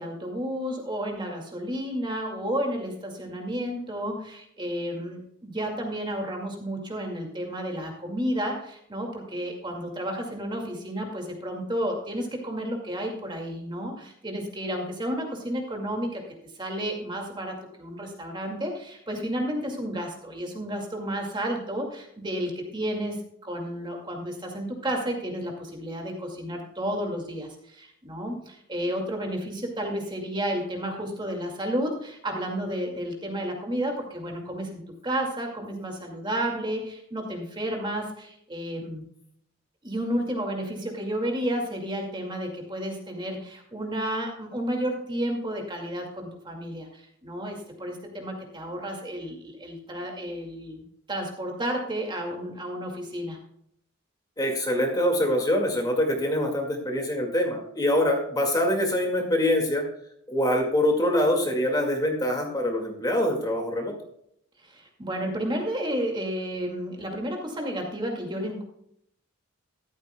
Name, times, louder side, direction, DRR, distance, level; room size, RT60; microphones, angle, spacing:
voice 1, 0.0-39.0 39.8-53.4 64.6-68.6, equal, 20° right, 1 dB, 2.2 m, -32 dB
voice 2, 54.4-59.8 60.3-63.9, left 1 dB, 20° left, 2 dB, 2.0 m, -24 dB
14.0 x 12.5 x 2.3 m, 0.71 s
head